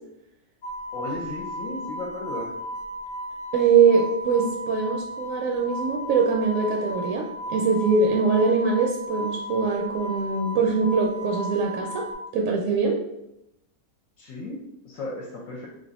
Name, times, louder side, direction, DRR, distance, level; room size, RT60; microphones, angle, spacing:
sound 1, 0.6-12.1, right 1 dB, 85° left, 0.4 m, -35 dB
voice 1, 0.9-2.5 14.2-15.7, left 2 dB, 70° left, -2 dB, 0.9 m, -35 dB
voice 2, 3.5-12.0 12.3-13.0, right 5 dB, 70° right, 1 dB, 0.9 m, -22 dB
3.3 x 2.5 x 4.0 m, 0.84 s
omnidirectional pair, 1.6 m